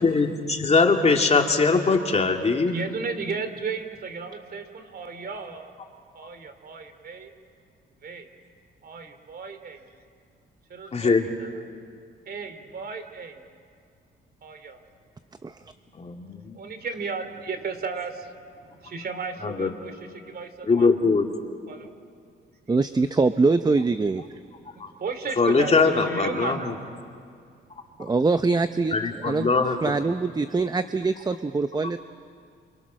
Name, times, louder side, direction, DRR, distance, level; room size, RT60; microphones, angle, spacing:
voice 1, 0.0-2.8 10.9-11.3 15.9-16.6 19.4-19.7 20.7-21.3 24.8-24.9 25.4-26.7 28.9-30.0, left 4 dB, 35° left, 3 dB, 2.7 m, -22 dB
voice 2, 2.7-5.7 6.1-7.3 8.0-8.3 8.8-9.9 10.7-11.5 12.3-13.4 14.4-14.8 16.5-19.9 20.3-20.9 21.7-21.9 24.7-26.8, right 4 dB, 50° right, 8 dB, 2.8 m, -34 dB
voice 3, 22.7-24.2 28.0-29.5 29.8-32.0, right 3 dB, 20° right, 10 dB, 0.7 m, -23 dB
28.5 x 27.5 x 6.4 m, 2.2 s
cardioid pair, 90°, 20 cm